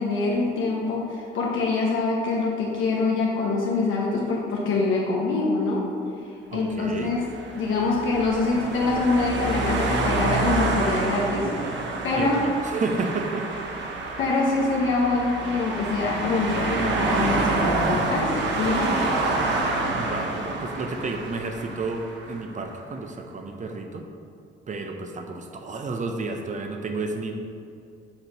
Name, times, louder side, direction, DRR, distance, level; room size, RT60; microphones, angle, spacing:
voice 1, 0.0-5.9 6.5-7.2 7.5-11.7 12.0-12.4 14.2-19.0, left 3 dB, 80° left, -3 dB, 0.9 m, -25 dB
voice 2, 6.5-7.1 12.1-13.5 19.9-24.1 24.7-27.3, right 3 dB, 40° right, 4 dB, 0.7 m, -31 dB
sound 1, 6.9-22.3, right 2 dB, 65° right, 0.9 m, -27 dB
7.2 x 3.0 x 5.3 m, 2.4 s
cardioid pair, 90°, 20 cm